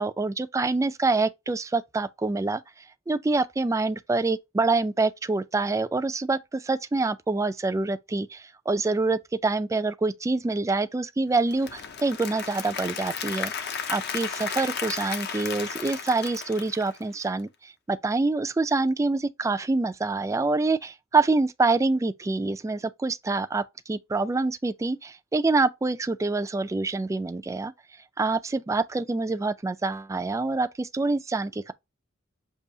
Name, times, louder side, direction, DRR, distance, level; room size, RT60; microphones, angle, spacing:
voice 1, 0.0-2.6 3.1-13.5 13.9-27.7 28.2-31.7, right 3 dB, 15° right, 0.3 m, -26 dB
Applause / Crowd, 11.3-17.4, left 7 dB, 55° left, 0.6 m, -34 dB
6.7 x 2.7 x 2.7 m
head